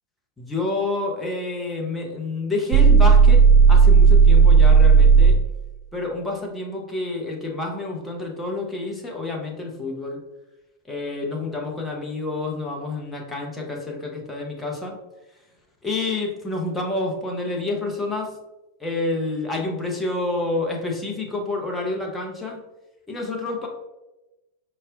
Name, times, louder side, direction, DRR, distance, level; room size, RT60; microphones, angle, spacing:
voice 1, 0.4-3.4 3.7-5.4 5.9-10.2 10.9-15.0 15.8-18.3 18.8-22.6 23.1-23.7, left 2 dB, 10° left, -1 dB, 0.7 m, -28 dB
sound 1, 2.7-5.5, right 5 dB, 45° right, 0.4 m, -12 dB
5.4 x 2.1 x 2.4 m, 1.0 s
figure-of-eight pair, 90°, 0 cm